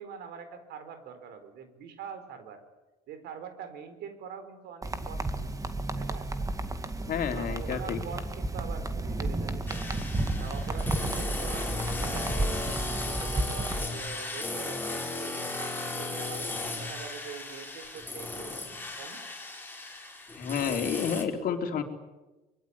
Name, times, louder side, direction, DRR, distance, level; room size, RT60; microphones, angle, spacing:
voice 1, 0.0-2.6 3.1-5.5 6.0-6.3 7.3-10.0 10.4-12.3 12.6-16.5 16.8-19.2, right 7 dB, 80° right, 10 dB, 4.3 m, -44 dB
sound 1, 4.8-13.9, right 2 dB, 20° right, 2.1 m, -32 dB
voice 2, 7.1-8.0 20.4-21.8, left 7 dB, 60° left, 5 dB, 3.6 m, -30 dB
sound 2, 9.7-21.2, left 2 dB, 10° left, 5.2 m, -36 dB
24.5 x 21.5 x 9.8 m, 1.1 s
cardioid pair, 110°, 17 cm